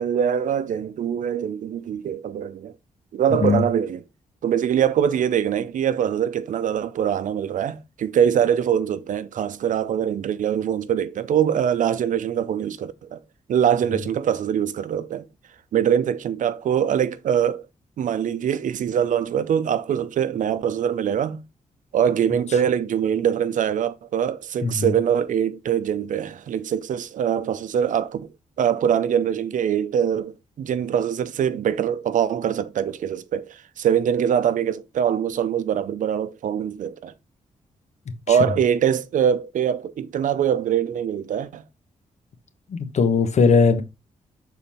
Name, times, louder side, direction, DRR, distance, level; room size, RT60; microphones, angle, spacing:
voice 1, 0.0-2.7 3.1-4.0 4.4-13.2 13.5-15.3 15.7-17.6 18.0-21.4 21.9-28.3 28.6-37.1 38.3-41.6, right 9 dB, 80° right, 0.6 m, -23 dB
voice 2, 3.3-3.6 24.6-24.9 38.3-38.4 42.7-43.8, left 5 dB, 60° left, 1.2 m, -19 dB
7.1 x 4.1 x 4.2 m
cardioid pair, 110°, 13 cm